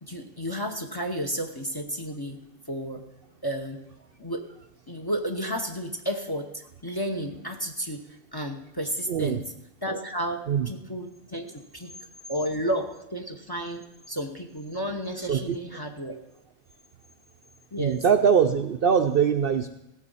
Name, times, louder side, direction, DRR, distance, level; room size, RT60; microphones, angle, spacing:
voice 1, 0.0-3.0 3.4-3.8 4.2-4.5 4.9-8.0 8.3-9.5 9.8-11.9 12.3-16.2 17.7-18.0, equal, 20° left, 5 dB, 0.8 m, -32 dB
voice 2, 9.1-9.4 10.5-10.7 15.3-15.6 17.8-19.7, right 7 dB, 55° right, 6 dB, 0.7 m, -22 dB
16.0 x 7.2 x 5.5 m, 0.88 s
omnidirectional pair, 1.3 m